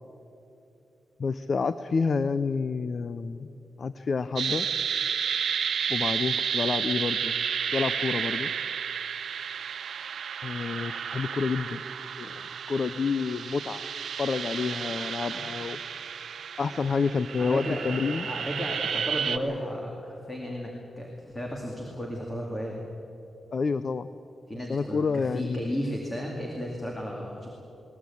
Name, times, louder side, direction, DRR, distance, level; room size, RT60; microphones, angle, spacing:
voice 1, 1.2-3.5 3.8-4.7 5.9-7.3 7.7-8.5 10.4-11.8 12.2-12.4 12.7-13.8 14.2-15.8 16.6-18.3 23.5-24.1 24.7-25.7, left 5 dB, 40° left, 13 dB, 0.5 m, -29 dB
sound 1, 4.4-19.4, right 7 dB, 65° right, 0.7 m, -31 dB
voice 2, 15.2-15.6 17.4-20.7 21.0-22.8 24.5-27.5, equal, 15° left, -1 dB, 2.3 m, -34 dB
20.5 x 19.5 x 8.5 m, 2.8 s
wide cardioid pair, 175°, 0 cm